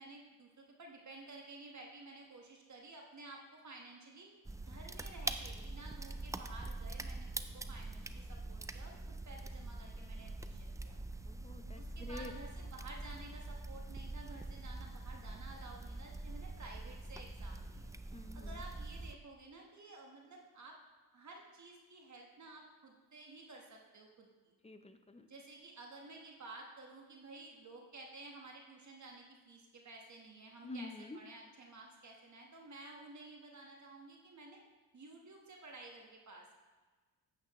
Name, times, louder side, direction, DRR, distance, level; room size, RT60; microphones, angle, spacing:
voice 1, 0.0-4.3 4.6-7.3 7.5-9.0 9.3-11.0 11.8-17.9 18.3-20.8 21.1-24.5 25.3-34.6 34.9-36.7, right 2 dB, 45° right, 0 dB, 1.3 m, -53 dB
sound 1, 4.4-19.1, right 2 dB, 10° right, 0.3 m, -44 dB
voice 2, 11.2-12.3 18.1-18.6 24.6-25.3 30.6-31.2, left 2 dB, 15° left, 8 dB, 0.7 m, -48 dB
8.7 x 8.3 x 3.0 m, 1.3 s
cardioid pair, 70°, 41 cm